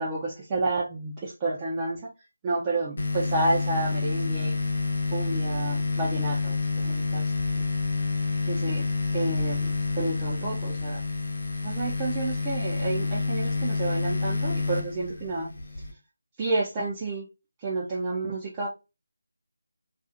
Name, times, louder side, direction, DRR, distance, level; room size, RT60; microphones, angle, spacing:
voice 1, 0.0-2.1 2.4-4.6 5.1-7.7 8.5-8.9 9.1-11.1 11.6-15.5 16.4-17.3 17.6-18.7, right 2 dB, 20° right, -5 dB, 0.6 m, -30 dB
sound 1, 3.0-15.9, left 4 dB, 65° left, 0.9 m, -28 dB
2.5 x 2.4 x 2.6 m, 0.28 s
figure-of-eight pair, 165°, 0 cm